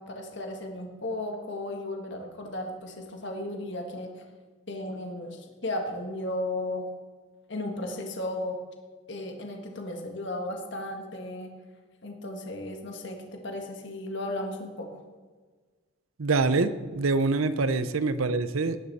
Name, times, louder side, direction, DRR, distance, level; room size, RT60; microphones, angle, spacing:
voice 1, 0.0-4.2 4.7-6.8 7.5-8.6 9.1-11.5 12.0-14.9, left 1 dB, 55° left, 2 dB, 1.7 m, -35 dB
voice 2, 16.2-18.8, right 3 dB, 80° right, 12 dB, 0.7 m, -25 dB
18.5 x 10.5 x 4.2 m, 1.4 s
head